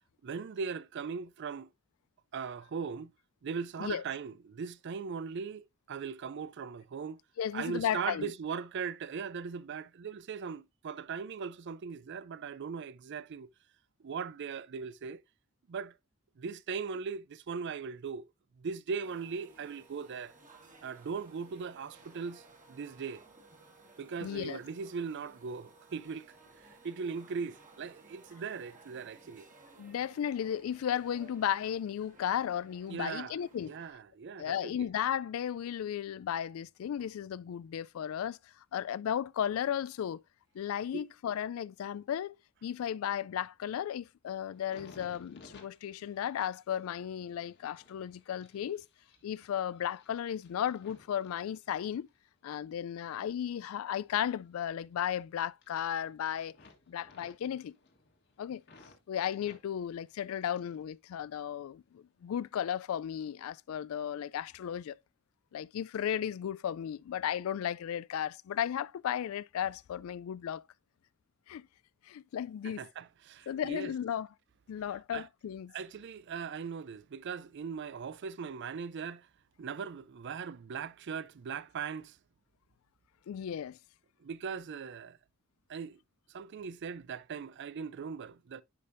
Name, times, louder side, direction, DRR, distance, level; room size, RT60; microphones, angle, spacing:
voice 1, 0.2-1.7 2.3-3.1 3.4-7.2 7.5-13.5 14.0-15.2 15.7-15.9 16.4-18.2 18.6-20.3 20.8-23.2 24.0-26.4 26.6-29.5 32.9-33.4 33.6-34.9 40.9-41.0 72.6-73.9 75.1-75.3 75.7-79.3 79.6-82.2 84.2-85.2 85.7-86.0 86.3-88.6, right 6 dB, 55° right, 0.4 m, -39 dB
voice 2, 7.4-8.3 24.2-24.6 29.8-33.7 34.4-38.4 38.7-40.2 40.5-42.4 42.6-48.9 49.2-52.1 52.4-56.5 56.9-57.7 58.4-58.6 59.1-64.9 65.5-70.6 71.5-71.6 72.1-72.8 73.5-74.3 74.7-75.7 83.3-83.8, left 9 dB, 70° left, 0.3 m, -35 dB
sound 1, 19.0-33.9, right 3 dB, 40° right, 1.7 m, -58 dB
sound 2, 44.5-52.2 52.6-55.2 55.5-56.2 56.5-59.0 59.3-60.9 61.2-61.9 62.5-62.7, left 3 dB, 55° left, 1.4 m, -60 dB
9.7 x 5.1 x 2.6 m
head